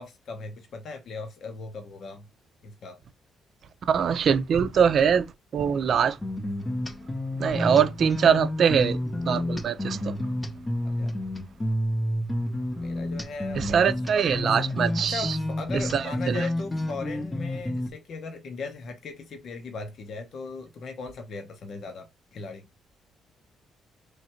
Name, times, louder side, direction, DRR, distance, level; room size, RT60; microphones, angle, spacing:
voice 1, 0.0-2.3 2.6-3.0 10.8-11.1 12.8-13.7 14.4-14.7 15.0-22.7, left 4 dB, 60° left, 0.8 m, -38 dB
voice 2, 3.9-5.2 5.5-6.2 7.4-9.0 9.3-10.1 13.6-15.4 15.9-16.5, right 7 dB, 60° right, 0.5 m, -23 dB
sound 1, 6.2-17.9, left 1 dB, 20° left, 0.7 m, -30 dB
3.2 x 2.7 x 4.3 m
cardioid pair, 90°, 0 cm